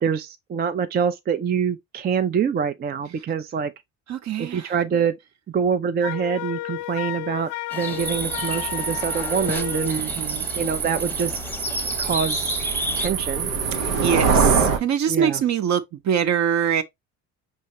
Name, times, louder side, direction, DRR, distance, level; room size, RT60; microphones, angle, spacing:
voice 1, 0.0-3.7 4.4-5.2 5.5-10.0 10.5-11.4 12.0-12.5 12.9-13.5 15.1-15.4, right 6 dB, 25° right, 0.4 m, -25 dB
voice 2, 4.1-4.7 9.9-10.5 13.7-16.8, right 8 dB, 45° right, 0.8 m, -24 dB
Wind instrument woodwind instrument, 6.0-10.0, left 19 dB, 70° left, 0.5 m, -33 dB
sound 1, 7.7-13.1, left 2 dB, 5° left, 0.8 m, -33 dB
sound 2, 8.0-14.8, right 5 dB, 90° right, 0.8 m, -25 dB
5.5 x 2.9 x 3.0 m
hypercardioid pair, 60°, 38 cm